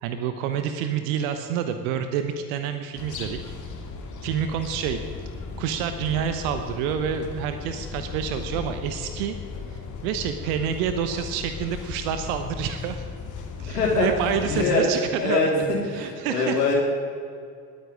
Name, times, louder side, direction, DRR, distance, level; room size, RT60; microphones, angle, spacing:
voice 1, 0.0-3.4 4.2-5.3 5.6-9.4 9.7-13.0 13.6-15.5 15.8-16.6, right 8 dB, 65° right, 8 dB, 1.1 m, -28 dB
sound 1, 2.9-14.6, left 5 dB, 40° left, 2.5 m, -36 dB
voice 2, 13.6-14.1 14.4-14.8 15.2-15.6 16.0-16.8, left 4 dB, 85° left, -2 dB, 3.3 m, -23 dB
20.5 x 9.8 x 5.1 m, 2.2 s
figure-of-eight pair, 60°, 47 cm